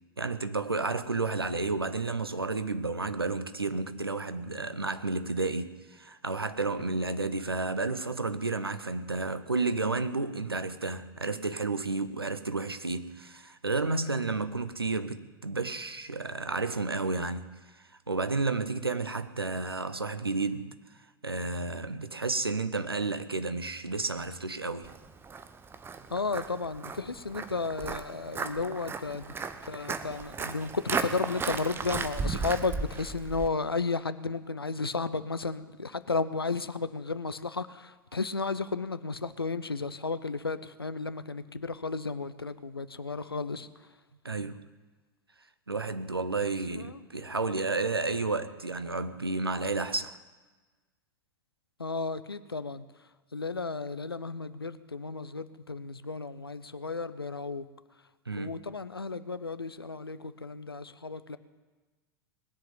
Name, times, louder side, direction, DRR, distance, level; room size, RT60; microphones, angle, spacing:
voice 1, 0.2-17.6 18.1-20.7 21.2-24.9 44.2-44.6 45.7-50.2 58.3-58.6, right 3 dB, 85° right, 0.9 m, -31 dB
Walk footsteps, 24.8-33.5, right 5 dB, 20° right, 1.1 m, -36 dB
voice 2, 26.1-29.2 29.7-43.7 46.4-47.0 51.8-52.8 53.3-57.6 58.4-61.4, left 4 dB, 85° left, 0.7 m, -33 dB
20.0 x 7.6 x 9.5 m
figure-of-eight pair, 90°, 12 cm